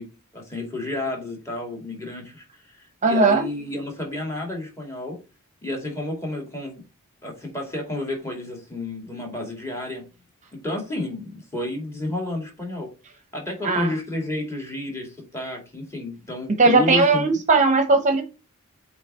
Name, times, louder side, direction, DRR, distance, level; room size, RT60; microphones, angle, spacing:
voice 1, 0.0-5.2 5.6-6.8 7.2-10.1 10.6-12.9 13.3-17.4, left 2 dB, 15° left, 2.3 m, -31 dB
voice 2, 3.0-3.4 13.6-13.9 16.6-18.2, right 3 dB, 35° right, 0.9 m, -18 dB
7.9 x 3.3 x 4.3 m
head